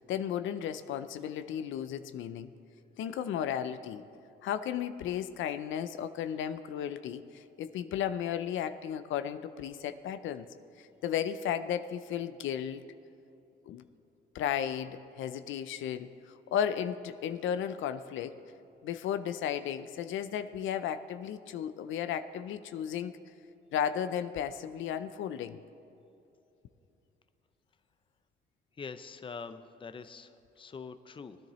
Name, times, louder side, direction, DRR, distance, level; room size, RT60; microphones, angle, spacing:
voice 1, 0.0-2.5 3.0-4.0 4.4-10.5 10.8-12.8 13.7-13.8 14.3-18.4 18.8-23.2 23.7-25.6, left 9 dB, 80° left, 11 dB, 0.5 m, -34 dB
voice 2, 28.8-31.4, left 5 dB, 25° left, 10 dB, 0.6 m, -44 dB
19.5 x 10.0 x 3.1 m, 2.8 s
cardioid pair, 90°, 20 cm